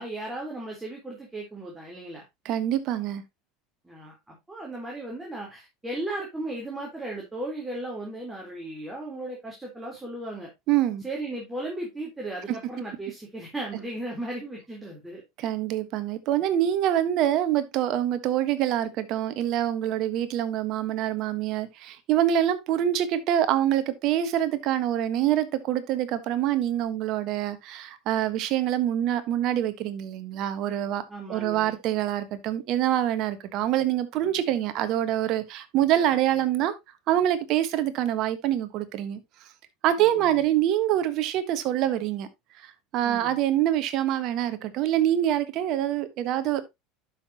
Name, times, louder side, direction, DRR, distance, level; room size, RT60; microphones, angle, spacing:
voice 1, 0.0-2.3 3.8-10.5 11.0-15.2 31.1-31.8 34.2-34.4 40.0-40.5 43.0-43.4, right 1 dB, 10° right, 3.6 m, -36 dB
voice 2, 2.4-3.2 10.7-11.0 15.4-31.0 31.3-36.7 37.1-39.2 39.8-42.3 42.6-46.6, right 11 dB, 55° right, 1.3 m, -25 dB
11.5 x 6.0 x 2.9 m
hypercardioid pair, 75°, 0 cm